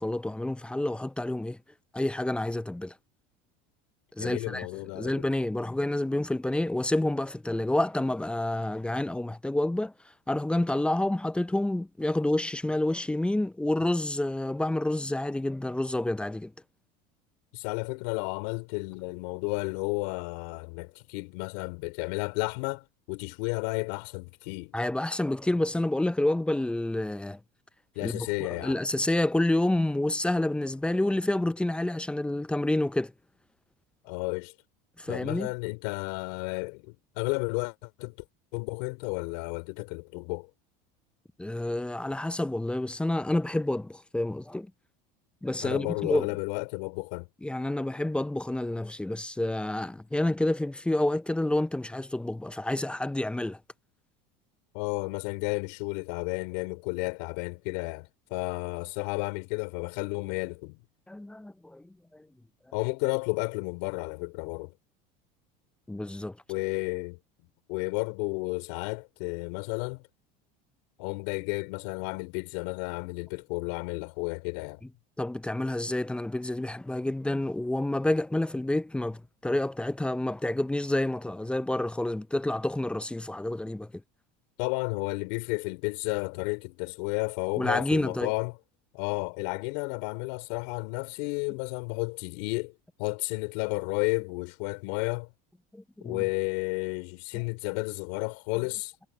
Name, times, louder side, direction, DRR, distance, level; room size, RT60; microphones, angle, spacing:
voice 1, 0.0-1.6 1.9-2.9 4.2-4.7 4.9-9.9 10.3-16.5 24.7-27.4 28.0-33.1 35.0-35.5 41.4-44.7 45.4-46.3 47.4-53.6 61.1-61.8 62.1-62.3 65.9-66.4 75.2-83.9 87.6-88.3 95.7-96.2 97.3-97.4, left 1 dB, 5° left, 0.6 m, -29 dB
voice 2, 4.2-5.3 17.5-24.7 27.9-28.8 34.0-34.5 35.1-38.1 38.5-40.5 45.6-47.3 54.7-60.8 62.7-64.7 66.5-67.2 67.7-70.0 71.0-74.8 84.6-88.5 88.9-92.7 93.0-95.3 96.0-98.9, left 31 dB, 75° left, 5.1 m, -32 dB
supercardioid pair, 120°, 21 cm